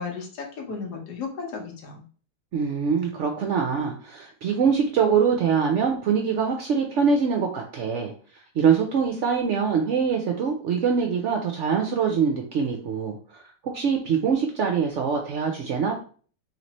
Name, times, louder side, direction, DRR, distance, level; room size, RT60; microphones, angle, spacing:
voice 1, 0.0-2.0, left 5 dB, 75° left, 1 dB, 1.6 m, -34 dB
voice 2, 2.5-8.1 8.6-15.9, right 6 dB, 65° right, 2 dB, 0.7 m, -24 dB
3.2 x 3.1 x 4.0 m, 0.43 s
omnidirectional pair, 1.8 m